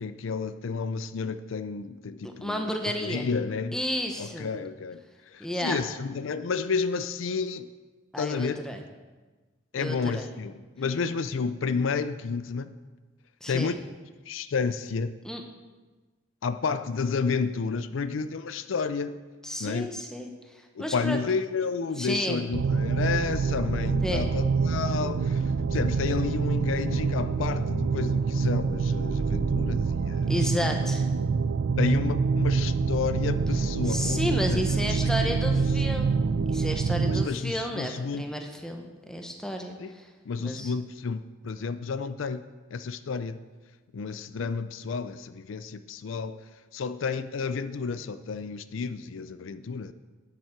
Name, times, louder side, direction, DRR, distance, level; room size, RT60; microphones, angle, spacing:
voice 1, 0.0-3.8 4.2-7.7 8.2-8.6 9.7-12.8 13.5-13.8 14.3-15.1 16.4-19.2 19.6-19.9 20.8-30.3 31.8-35.7 37.1-38.3 39.8-39.9 40.3-42.4 42.7-43.4 43.9-46.4 46.7-49.9, left 5 dB, 80° left, 12 dB, 0.5 m, -31 dB
voice 2, 2.2-3.3 3.7-4.5 5.4-5.8 8.1-8.8 9.8-10.3 13.4-13.8 15.2-15.4 19.4-21.2 22.0-22.4 24.0-24.3 30.3-31.1 33.8-40.1 40.4-40.7, equal, 5° left, 3 dB, 0.9 m, -32 dB
sound 1, 22.5-37.3, right 4 dB, 85° right, 0.5 m, -26 dB
9.3 x 7.7 x 5.8 m, 1.3 s
head